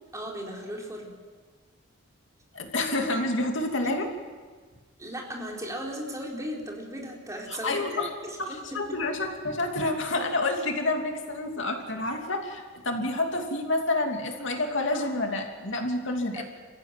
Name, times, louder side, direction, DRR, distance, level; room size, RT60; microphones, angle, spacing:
voice 1, 0.1-1.1 3.8-4.0 5.0-9.0 16.3-16.4, equal, 15° right, -1 dB, 4.1 m, -36 dB
voice 2, 2.5-4.0 7.5-8.1 8.4-16.4, left 2 dB, 60° left, 3 dB, 2.9 m, -28 dB
28.5 x 15.0 x 9.3 m, 1.5 s
head